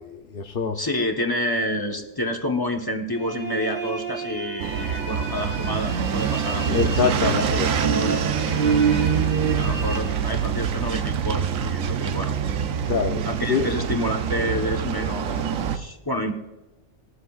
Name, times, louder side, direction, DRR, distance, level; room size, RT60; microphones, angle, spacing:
voice 1, 0.0-0.8 6.7-7.7 12.9-13.2 13.5-13.7, left 5 dB, 50° left, 3 dB, 0.9 m, -24 dB
voice 2, 0.7-8.2 8.6-12.3 13.2-16.3, left 1 dB, 20° left, 2 dB, 1.1 m, -29 dB
sound 1, 3.1-10.8, right 3 dB, 65° right, 2.5 m, -35 dB
sound 2, 4.6-15.8, right 7 dB, 85° right, 1.2 m, -26 dB
phase whale drop, 5.6-10.5, right 7 dB, 50° right, 0.6 m, -27 dB
19.5 x 13.0 x 2.5 m, 1.1 s
omnidirectional pair, 1.3 m